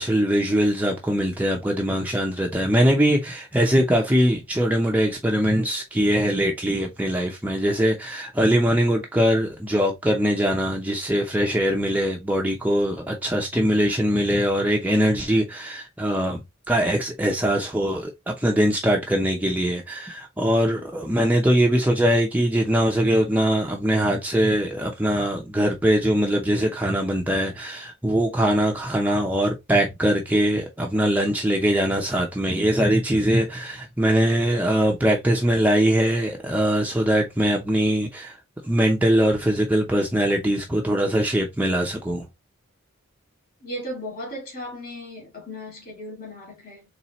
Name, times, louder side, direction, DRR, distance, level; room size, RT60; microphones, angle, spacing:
voice 1, 0.0-16.4 16.7-38.4 38.6-42.3, equal, 10° right, 0.6 m, -22 dB
voice 2, 43.6-46.8, equal, 40° left, 2.4 m, -36 dB
4.2 x 3.3 x 3.0 m
head